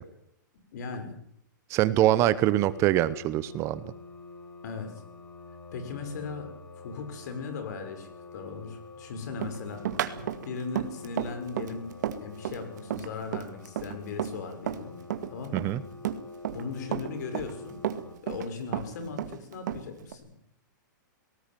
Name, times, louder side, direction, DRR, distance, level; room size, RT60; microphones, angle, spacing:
voice 1, 0.7-1.1 4.6-5.0 5.7-6.5 6.8-9.8 10.4-15.0 15.3-15.7 16.5-17.8 18.2-20.3, left 5 dB, 60° left, 8 dB, 6.4 m, -38 dB
voice 2, 1.7-3.8 15.5-15.8, right 13 dB, 25° right, 16 dB, 0.9 m, -24 dB
sound 1, 2.5-18.2, left 3 dB, 35° left, 7.0 m, -47 dB
Run, 9.4-14.8 15.1-16.7 16.9-18.5 18.7-20.1, right 11 dB, 60° right, 2.1 m, -32 dB
19.0 x 18.5 x 9.2 m, 0.72 s
hypercardioid pair, 155°, 11 cm